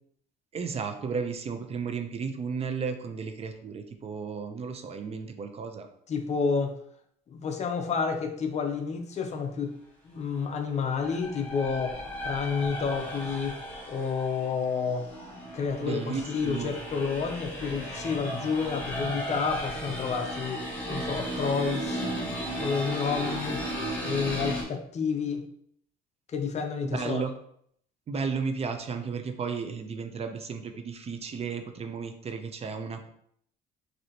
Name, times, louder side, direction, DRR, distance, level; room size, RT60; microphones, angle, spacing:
voice 1, 0.5-5.9 15.8-16.7 26.8-27.3 28.1-33.1, right 5 dB, 35° right, 6 dB, 0.6 m, -34 dB
voice 2, 6.1-6.7 7.3-9.8 10.0-12.0 12.2-13.5 13.9-15.1 15.5-16.0 16.3-20.6 20.9-22.0 22.6-23.6 24.0-25.5 26.3-27.2, left 5 dB, 40° left, 5 dB, 0.7 m, -30 dB
sound 1, 10.6-24.6, equal, 10° left, 1.6 m, -35 dB
6.2 x 2.8 x 2.9 m, 0.67 s
cardioid pair, 110°, 17 cm